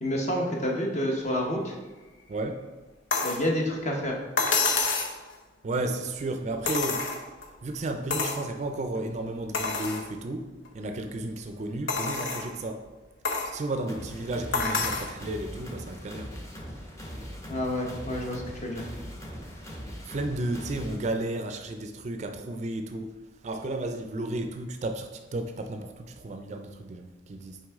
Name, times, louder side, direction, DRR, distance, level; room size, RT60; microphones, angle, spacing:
voice 1, 0.0-1.7 3.2-4.2 17.5-18.8, left 1 dB, 40° left, 0 dB, 1.0 m, -29 dB
sound 1, 3.1-3.4 4.4-5.2 6.6-7.4 8.1-8.4 8.9-9.0 9.5-10.0 10.6-10.7 11.9-12.5 13.2-13.5 14.5-15.1 16.4-16.5, left 4 dB, 85° left, 0.9 m, -27 dB
voice 2, 5.6-7.0 7.6-10.4 10.7-12.8 13.5-16.3 20.1-23.1 23.4-27.6, right 2 dB, 40° right, 6 dB, 0.4 m, -33 dB
sound 2, 13.9-21.0, equal, 15° left, 0.8 m, -40 dB
6.2 x 4.4 x 3.5 m, 1.2 s
head